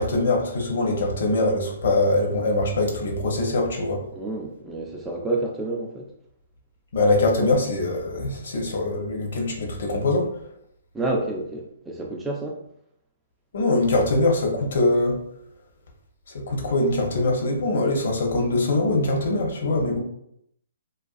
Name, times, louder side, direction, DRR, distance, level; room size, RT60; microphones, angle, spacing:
voice 1, 0.0-4.0 6.9-10.2 13.5-15.2 16.5-20.0, left 2 dB, 65° left, 1 dB, 0.7 m, -22 dB
voice 2, 4.1-6.1 10.9-12.6, right 2 dB, 10° right, -1 dB, 0.3 m, -29 dB
2.4 x 2.3 x 2.4 m, 0.74 s
hypercardioid pair, 140°, 0 cm